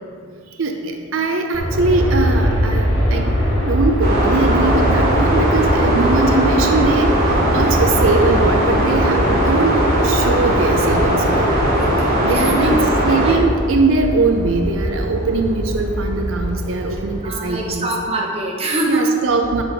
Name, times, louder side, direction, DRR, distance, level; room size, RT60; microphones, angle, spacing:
voice 1, 0.6-3.3 3.7-11.5 12.2-12.7 13.0-17.9 18.9-19.6, right 3 dB, 80° right, 3 dB, 0.5 m, -21 dB
Aircraft, 1.5-17.7, equal, 75° left, 1.3 m, -22 dB
sound 1, 4.0-13.3, right 1 dB, 50° right, 1.7 m, -18 dB
voice 2, 11.7-12.9 13.2-13.4 17.2-19.1, right 1 dB, 30° right, -2 dB, 0.8 m, -23 dB
7.5 x 4.1 x 4.5 m, 2.3 s
head